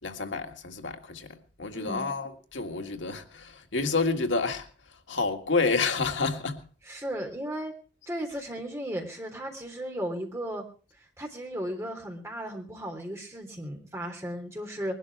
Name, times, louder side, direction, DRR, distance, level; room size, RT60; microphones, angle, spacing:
voice 1, 0.0-4.7 5.1-6.7, left 4 dB, 85° left, 1.8 m, -29 dB
voice 2, 1.7-2.1 6.9-7.7 8.1-10.6 11.2-15.0, equal, 15° right, 3.5 m, -35 dB
21.0 x 12.0 x 4.8 m
head